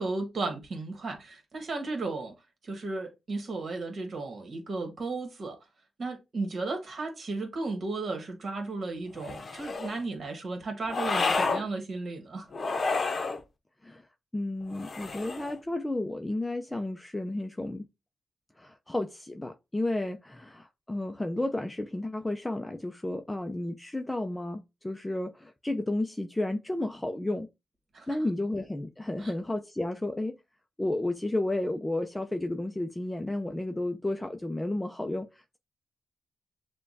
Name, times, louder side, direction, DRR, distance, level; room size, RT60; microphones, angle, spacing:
voice 1, 0.0-2.3 2.6-5.6 6.0-12.5 27.9-28.1 29.2-29.3, right 3 dB, 60° right, 1.4 m, -34 dB
sound 1, 9.2-10.0 10.9-11.6 12.5-13.4 14.7-15.6, left 3 dB, 50° left, 0.7 m, -30 dB
voice 2, 14.3-17.8 18.6-27.5 28.1-30.4 30.8-35.6, left 1 dB, 15° left, 0.4 m, -32 dB
6.6 x 2.2 x 2.6 m
cardioid pair, 65°, 0 cm